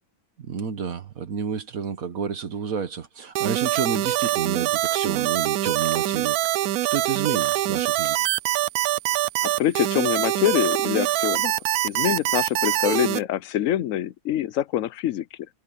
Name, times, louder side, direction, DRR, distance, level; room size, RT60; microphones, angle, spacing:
voice 1, 0.4-6.4 6.9-8.3, right 6 dB, 70° right, 1.6 m, -30 dB
sound 1, 3.4-13.2, right 14 dB, 90° right, 1.1 m, -24 dB
voice 2, 9.4-15.3, left 12 dB, 70° left, 0.9 m, -25 dB
omnidirectional pair, 1.5 m